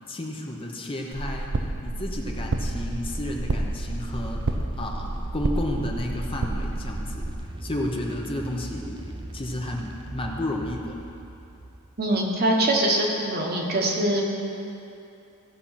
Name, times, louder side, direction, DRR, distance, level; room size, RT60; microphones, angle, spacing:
voice 1, 0.1-1.5 1.8-7.3 7.6-11.0, left 1 dB, 25° left, 0 dB, 0.9 m, -32 dB
sound 1, 1.1-7.3, right 2 dB, 65° right, 0.6 m, -30 dB
sound 2, 2.2-12.3, right 2 dB, 20° right, 0.6 m, -39 dB
voice 2, 12.0-14.3, right 1 dB, 45° right, -1 dB, 1.4 m, -23 dB
16.0 x 5.8 x 5.8 m, 2.7 s
head